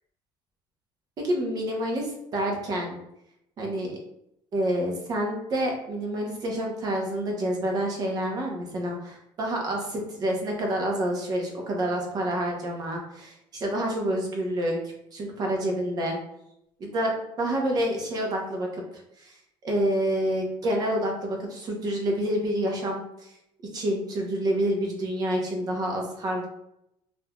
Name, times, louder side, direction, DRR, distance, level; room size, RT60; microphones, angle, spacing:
voice 1, 1.2-3.0 3.6-4.0 4.5-14.8 15.1-16.2 16.8-18.8 19.2-19.4 19.6-23.3 23.7-26.5, right 1 dB, 40° right, 0 dB, 0.7 m, -28 dB
3.1 x 2.5 x 2.2 m, 0.80 s
cardioid pair, 140°, 10 cm